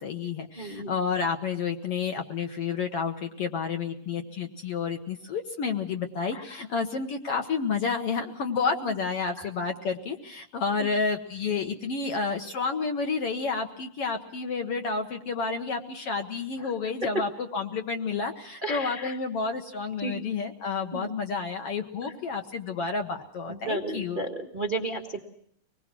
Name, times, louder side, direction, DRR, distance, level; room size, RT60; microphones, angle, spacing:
voice 1, 0.0-24.2, left 5 dB, 60° left, 5 dB, 1.8 m, -30 dB
voice 2, 0.6-0.9 6.3-6.6 8.8-8.9 9.4-9.5 16.6-16.7 18.6-19.2 20.0-20.3 20.9-21.2 22.0-22.1 23.5-25.2, right 2 dB, 35° right, 1 dB, 0.7 m, -34 dB
25.0 x 20.5 x 6.1 m, 0.65 s
omnidirectional pair, 3.8 m